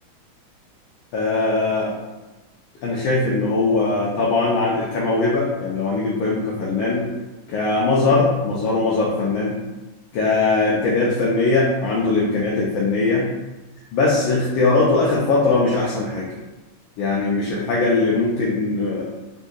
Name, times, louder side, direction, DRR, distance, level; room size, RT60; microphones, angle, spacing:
voice 1, 1.1-1.9 2.8-7.1 7.5-9.5 10.1-13.3 13.9-16.3 17.0-19.1, left 3 dB, 80° left, -4 dB, 1.4 m, -20 dB
3.7 x 2.7 x 2.4 m, 1.1 s
omnidirectional pair, 2.2 m